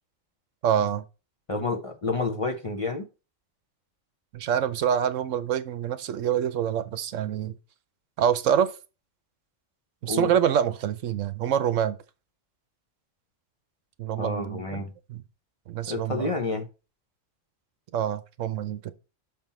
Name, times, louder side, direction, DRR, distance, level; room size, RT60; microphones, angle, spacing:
voice 1, 0.6-1.0 4.3-7.6 8.2-8.7 10.0-12.0 14.0-14.8 15.1-15.2 15.7-16.3 17.9-18.9, right 9 dB, 75° right, 1.0 m, -26 dB
voice 2, 1.5-3.1 10.1-10.3 14.2-14.9 15.9-16.7, left 3 dB, 30° left, 0.8 m, -29 dB
5.9 x 5.6 x 4.3 m
omnidirectional pair, 1.3 m